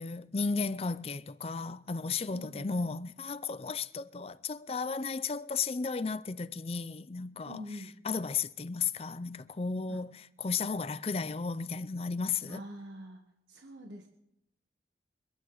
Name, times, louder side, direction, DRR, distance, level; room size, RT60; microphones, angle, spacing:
voice 1, 0.0-7.6 8.0-12.6, left 5 dB, 35° left, 0.5 m, -34 dB
voice 2, 2.3-2.7 7.4-7.9 9.9-10.0 12.5-13.2 13.5-14.1, equal, 85° right, 1.5 m, -45 dB
25.0 x 9.8 x 4.0 m
head